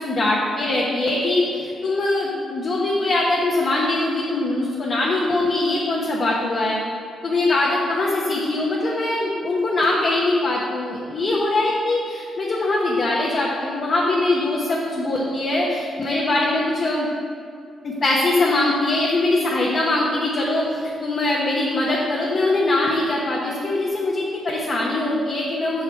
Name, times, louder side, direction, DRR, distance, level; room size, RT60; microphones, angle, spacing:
voice 1, 0.0-6.8 7.2-17.1 17.8-25.8, left 2 dB, 35° left, -4 dB, 1.0 m, -22 dB
8.0 x 7.1 x 4.5 m, 2.3 s
cardioid pair, 170°, 0 cm